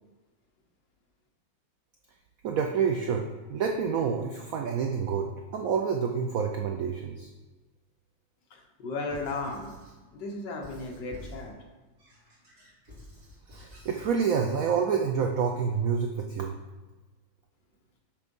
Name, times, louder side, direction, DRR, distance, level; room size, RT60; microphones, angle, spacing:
voice 1, 2.4-7.3 13.5-16.5, right 6 dB, 85° right, 3 dB, 0.7 m, -28 dB
voice 2, 8.5-9.7 10.1-11.5, left 3 dB, 70° left, 1 dB, 1.5 m, -35 dB
Squeak / Writing, 9.1-10.0 10.6-11.5 12.0-14.2, left 1 dB, 55° right, 2.6 m, -49 dB
6.6 x 3.5 x 5.3 m, 1.2 s
omnidirectional pair, 2.1 m